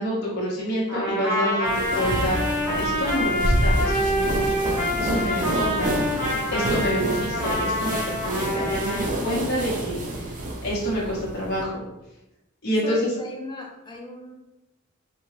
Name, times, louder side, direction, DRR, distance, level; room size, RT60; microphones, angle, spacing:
voice 1, 0.0-2.4 2.7-6.0 6.5-10.3 10.6-11.8 12.6-13.1, equal, 50° left, -6 dB, 0.8 m, -28 dB
Trumpet, 0.9-9.1, left 1 dB, 15° right, 1.3 m, -26 dB
sound 1, 1.6-11.6, right 1 dB, 40° right, 0.5 m, -28 dB
voice 2, 12.8-14.3, left 1 dB, 25° left, 1 dB, 0.4 m, -37 dB
2.8 x 2.2 x 3.0 m, 0.93 s
head